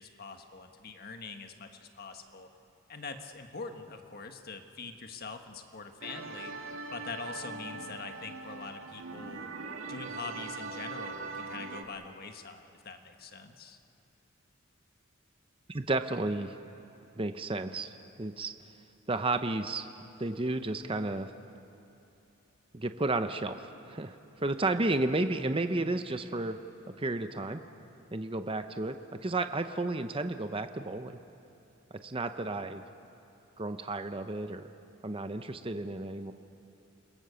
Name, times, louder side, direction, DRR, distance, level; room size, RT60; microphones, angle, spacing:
voice 1, 0.0-2.5 2.9-6.5 6.9-9.5 9.9-13.8 24.8-25.0, left 4 dB, 50° left, 6 dB, 1.5 m, -44 dB
sound 1, 6.0-11.8, right 3 dB, 75° right, 2.0 m, -41 dB
voice 2, 15.7-16.6 17.2-17.9 18.2-18.5 19.1-19.9 20.2-21.3 22.7-24.2 24.4-26.6 27.0-27.6 28.1-29.0 29.2-31.2 32.0-32.8 33.6-34.7 35.0-36.3, right 2 dB, 25° right, 8 dB, 0.8 m, -32 dB
29.5 x 22.0 x 7.0 m, 2.8 s
head